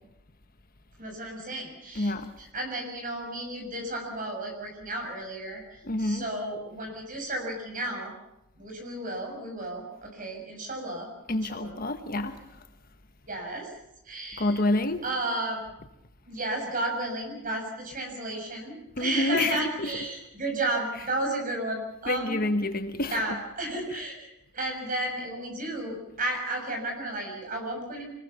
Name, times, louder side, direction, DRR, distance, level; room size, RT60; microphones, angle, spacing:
voice 1, 1.0-2.1 2.4-8.1 8.6-11.8 13.3-13.7 14.1-14.6 15.0-15.7 16.3-22.4 23.1-24.3 24.5-28.1, right 1 dB, 40° right, 3 dB, 6.9 m, -33 dB
voice 2, 1.9-2.4 5.8-6.2 11.3-12.4 14.4-15.0 19.0-19.9 22.1-23.2, left 2 dB, 40° left, 9 dB, 1.3 m, -28 dB
25.5 x 20.5 x 7.1 m, 0.87 s
head